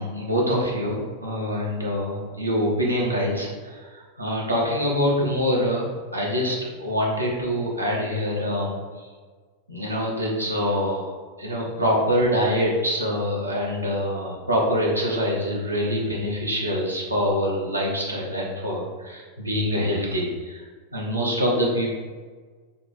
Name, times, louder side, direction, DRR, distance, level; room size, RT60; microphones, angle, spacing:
voice 1, 0.0-9.1 9.7-11.1 11.4-20.6 20.9-22.0, equal, 85° right, -3 dB, 1.0 m, -25 dB
3.5 x 3.0 x 4.2 m, 1.5 s
figure-of-eight pair, 90°, 0 cm